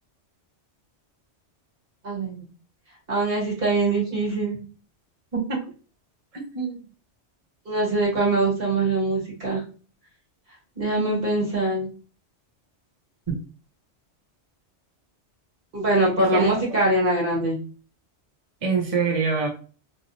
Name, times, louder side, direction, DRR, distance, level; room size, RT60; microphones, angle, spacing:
voice 1, 2.0-2.4 3.1-4.6 7.7-9.6 10.8-11.9 15.7-17.6, right 2 dB, 55° right, -4 dB, 1.8 m, -23 dB
voice 2, 6.3-6.8 16.2-16.6 18.6-19.5, right 5 dB, 40° right, -1 dB, 0.6 m, -25 dB
3.2 x 2.6 x 2.6 m, 0.38 s
omnidirectional pair, 1.2 m